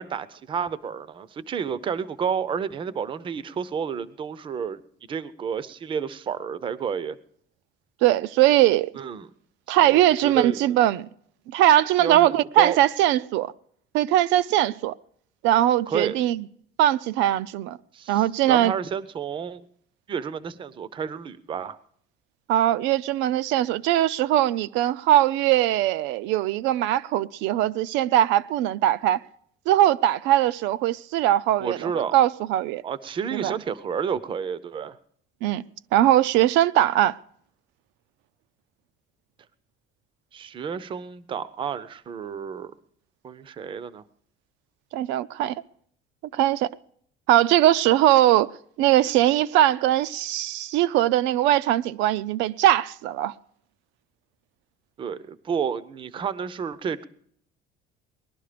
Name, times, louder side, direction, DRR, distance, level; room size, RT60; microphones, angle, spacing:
voice 1, 0.0-4.8 5.1-7.2 9.0-9.3 9.8-10.8 12.0-12.8 15.9-16.2 17.9-19.6 20.1-21.8 31.6-32.1 32.8-35.0 40.3-42.7 43.2-44.0 55.0-57.0, right 7 dB, 25° right, 0.6 m, -30 dB
voice 2, 8.0-8.9 9.7-11.1 11.5-13.5 13.9-14.9 15.4-16.4 16.8-17.8 18.1-18.7 22.5-29.2 29.7-32.8 33.3-33.5 35.4-35.6 35.9-37.2 44.9-45.6 46.3-46.7 47.3-48.5 48.8-53.3, right 13 dB, 75° right, 0.5 m, -21 dB
19.5 x 12.0 x 5.0 m
cardioid pair, 165°, 19 cm